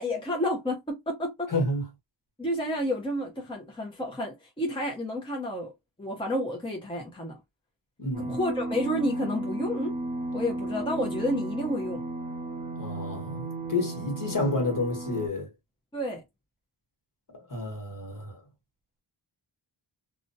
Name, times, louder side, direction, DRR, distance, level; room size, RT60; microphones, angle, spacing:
voice 1, 0.0-1.5 2.4-5.7 6.0-7.4 8.3-9.9 10.3-12.0 15.9-16.2, left 1 dB, 10° left, 0.8 m, -30 dB
voice 2, 1.5-1.8 8.0-8.3 12.8-15.5 17.3-18.4, left 2 dB, 40° left, 1.4 m, -30 dB
sound 1, 8.1-15.3, right 2 dB, 15° right, 1.2 m, -34 dB
2.5 x 2.2 x 2.7 m
cardioid pair, 65°, 50 cm